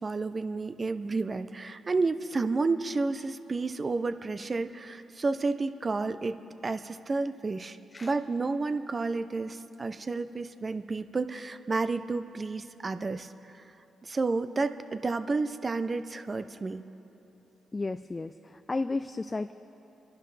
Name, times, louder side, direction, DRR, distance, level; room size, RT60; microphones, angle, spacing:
voice 1, 0.0-6.4 6.6-13.3 14.0-16.8, right 3 dB, 40° right, 10 dB, 0.7 m, -31 dB
voice 2, 17.7-19.5, left 3 dB, 30° left, 10 dB, 0.5 m, -33 dB
26.0 x 11.5 x 3.4 m, 3.0 s
supercardioid pair, 50°, 0 cm